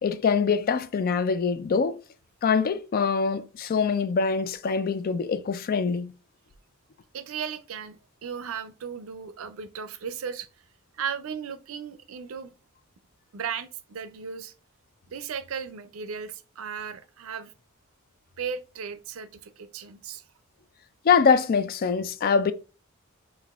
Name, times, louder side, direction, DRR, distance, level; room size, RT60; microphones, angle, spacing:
voice 1, 0.0-2.0 2.4-6.1 21.0-22.5, left 5 dB, 45° left, 0.4 m, -24 dB
voice 2, 7.1-10.5 10.9-12.5 13.3-14.5 15.1-17.5 18.4-20.2, right 7 dB, 75° right, 0.5 m, -36 dB
5.9 x 2.5 x 2.3 m
head